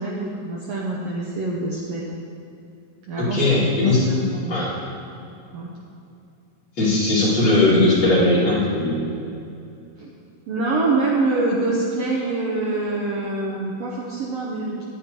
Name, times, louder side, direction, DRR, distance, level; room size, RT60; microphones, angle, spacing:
voice 1, 0.0-2.1 3.1-3.5 3.8-4.7 5.5-5.7 10.0-10.1 10.5-14.8, right 2 dB, 75° right, -4 dB, 1.6 m, -25 dB
voice 2, 3.3-4.1 4.5-4.8 6.8-9.1, left 2 dB, 35° left, -9 dB, 2.8 m, -18 dB
10.0 x 9.8 x 2.9 m, 2.6 s
omnidirectional pair, 3.7 m